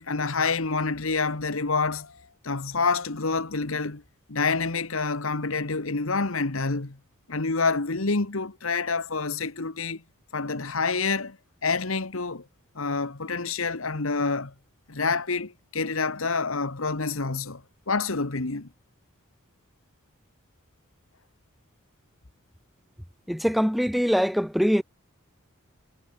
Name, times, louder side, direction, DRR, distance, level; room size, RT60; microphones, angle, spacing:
voice 1, 0.0-4.0 4.3-7.0 7.3-10.0 10.3-11.4 11.6-12.4 12.7-14.5 14.9-17.6 17.9-18.7, left 4 dB, 70° left, 1.5 m, -27 dB
voice 2, 23.3-24.8, equal, ahead, 1.2 m, -23 dB
head